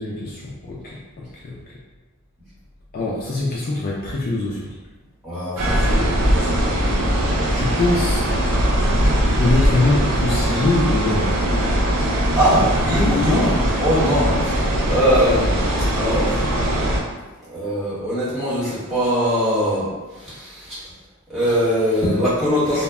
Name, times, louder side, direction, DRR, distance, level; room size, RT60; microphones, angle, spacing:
voice 1, 0.0-1.7 2.9-4.8 7.5-8.3 9.3-11.4 14.2-14.3, left 2 dB, 45° left, -5 dB, 0.4 m, -23 dB
voice 2, 5.2-6.6 12.3-16.4 17.5-20.8 21.3-22.8, equal, ahead, -13 dB, 1.2 m, -21 dB
sound 1, 5.6-17.0, equal, 70° right, 0.5 m, -20 dB
2.1 x 2.1 x 3.5 m, 1.2 s
head